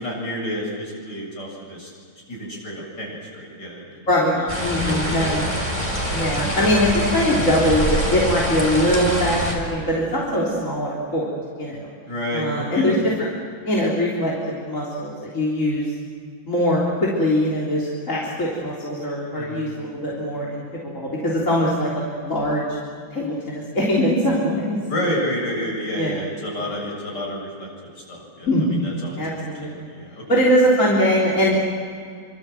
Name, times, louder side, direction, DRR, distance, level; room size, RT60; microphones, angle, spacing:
voice 1, 0.0-1.9 2.3-4.1 4.8-5.8 6.6-6.7 12.1-12.9 19.4-19.7 24.9-30.2, equal, 55° left, -2 dB, 8.3 m, -30 dB
voice 2, 4.1-5.5 6.1-11.3 11.6-11.8 12.3-13.0 13.6-15.8 16.5-22.6 23.1-24.8 26.0-26.2 28.5-28.9 29.2-29.9 30.3-31.6, equal, 35° left, -4 dB, 4.1 m, -22 dB
sound 1, 4.5-9.6, equal, 15° left, 4.4 m, -25 dB
27.0 x 26.0 x 7.9 m, 2.2 s
omnidirectional pair, 2.3 m